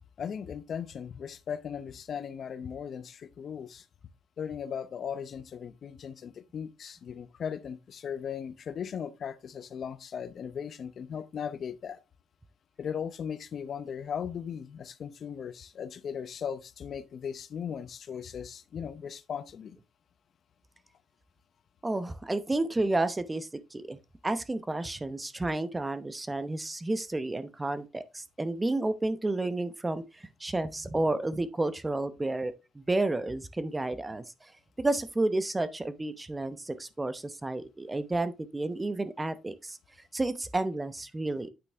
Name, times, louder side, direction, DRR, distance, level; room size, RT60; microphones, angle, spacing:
voice 1, 0.2-3.8 4.4-12.0 12.8-19.8, left 7 dB, 55° left, 0.7 m, -38 dB
voice 2, 21.8-24.0 24.2-34.5 34.8-39.8 40.1-41.5, right 2 dB, 20° right, 0.8 m, -31 dB
8.8 x 5.3 x 3.5 m
cardioid pair, 90°, 0 cm